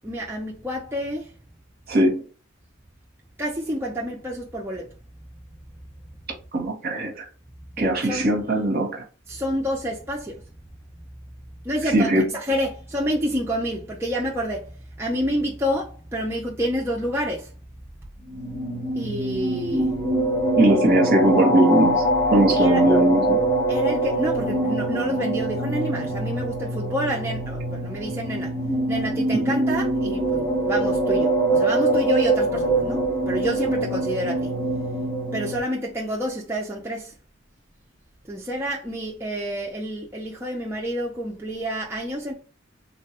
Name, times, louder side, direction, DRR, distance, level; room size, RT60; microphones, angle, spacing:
voice 1, 0.0-1.3 3.4-4.9 8.0-8.3 9.3-10.4 11.6-17.5 19.0-19.9 22.5-22.9 23.7-28.5 28.9-34.5 35.3-37.1 38.3-42.3, equal, 10° right, 0.4 m, -28 dB
voice 2, 1.9-2.2 6.5-7.3 7.8-9.0 11.9-12.2 20.6-22.0 22.3-23.4 29.3-29.5, right 1 dB, 45° right, 0.8 m, -20 dB
sound 1, 18.2-35.6, right 1 dB, 15° left, 1.1 m, -24 dB
3.2 x 2.2 x 2.8 m
head